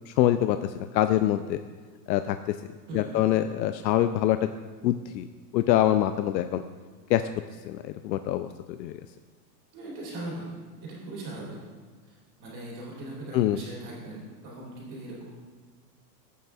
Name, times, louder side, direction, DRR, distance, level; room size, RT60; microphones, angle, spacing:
voice 1, 0.1-1.6 2.1-2.5 2.9-4.5 4.8-5.3 5.5-6.6 7.1-7.2 7.7-9.0 13.3-13.6, left 13 dB, 85° left, 9 dB, 0.6 m, -25 dB
voice 2, 2.9-3.4 9.7-10.5 10.8-11.6 12.0-15.2, right 2 dB, 25° right, -5 dB, 2.8 m, -40 dB
14.5 x 8.4 x 2.4 m, 1.5 s
supercardioid pair, 180°, 50 cm